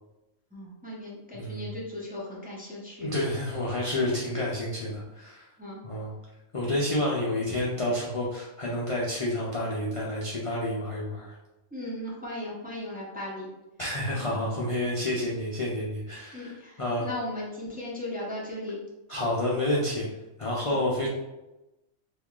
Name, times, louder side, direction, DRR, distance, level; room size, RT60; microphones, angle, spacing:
voice 1, 0.5-3.1 5.6-5.8 11.7-13.5 16.3-18.8 20.7-20.8, left 1 dB, 10° right, -6 dB, 0.5 m, -37 dB
voice 2, 1.3-1.7 3.0-5.4 5.8-6.1 6.5-11.4 13.8-17.1 19.1-20.0 20.4-21.1, left 1 dB, 55° left, -5 dB, 0.3 m, -29 dB
3.6 x 3.0 x 2.4 m, 1.0 s
omnidirectional pair, 1.4 m